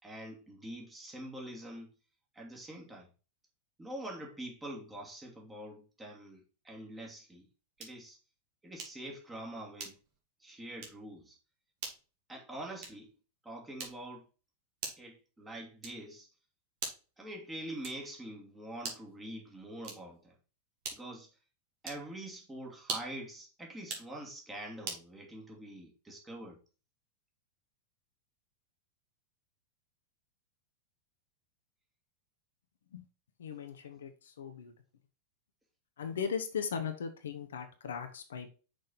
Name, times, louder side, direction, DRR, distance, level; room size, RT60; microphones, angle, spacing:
voice 1, 0.0-1.9 2.3-3.1 3.8-7.5 7.8-8.2 8.6-10.0 10.4-11.4 12.3-13.1 13.4-14.3 15.0-16.3 17.2-20.3 20.9-21.3 21.8-26.6, right 1 dB, 10° right, 2.4 m, -45 dB
sound 1, 7.8-8.1 8.8-9.1 9.8-10.2 10.8-11.1 11.8-12.1 12.8-13.1 13.8-14.2 14.8-15.2 15.8-16.2 16.8-17.2 17.8-18.2 18.8-19.2 19.8-20.2 20.8-21.2 21.8-22.1 22.8-23.2 23.8-24.1 24.8-25.1, right 4 dB, 45° right, 2.3 m, -43 dB
voice 2, 33.4-34.1 34.4-34.7 36.0-38.5, left 6 dB, 65° left, 1.0 m, -38 dB
6.2 x 5.0 x 4.0 m
figure-of-eight pair, 90°, 0 cm